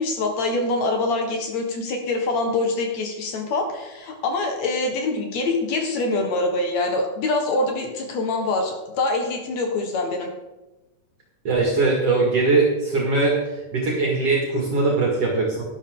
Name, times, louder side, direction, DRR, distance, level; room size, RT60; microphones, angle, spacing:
voice 1, 0.0-10.3, left 2 dB, 60° left, 3 dB, 2.5 m, -24 dB
voice 2, 11.4-13.4 13.7-15.6, right 3 dB, 50° right, -2 dB, 2.9 m, -21 dB
11.5 x 11.0 x 3.8 m, 1.1 s
omnidirectional pair, 3.9 m